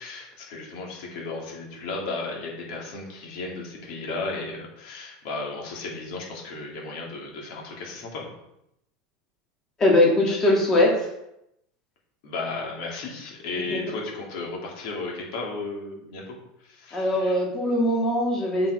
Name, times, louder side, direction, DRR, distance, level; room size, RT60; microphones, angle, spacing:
voice 1, 0.0-8.3 10.3-10.4 12.2-16.4 16.6-17.4, left 3 dB, 55° left, -1 dB, 2.7 m, -34 dB
voice 2, 9.8-10.9 13.6-13.8 16.9-18.7, left 1 dB, 20° left, -3 dB, 2.0 m, -21 dB
7.6 x 5.5 x 4.8 m, 0.81 s
supercardioid pair, 175°, 3 cm